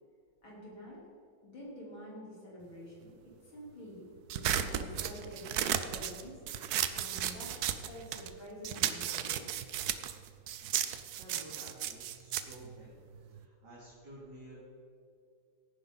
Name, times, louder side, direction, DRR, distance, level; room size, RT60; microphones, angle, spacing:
voice 1, 0.4-1.0 1.4-4.0 4.3-9.5, equal, 70° left, -6 dB, 4.3 m, -48 dB
sound 1, 4.3-8.3 8.6-13.4, right 10 dB, 75° right, 0.9 m, -34 dB
voice 2, 11.2-12.9 13.4-14.6, right 1 dB, 55° right, -7 dB, 3.0 m, -51 dB
16.5 x 9.5 x 4.0 m, 2.3 s
omnidirectional pair, 2.3 m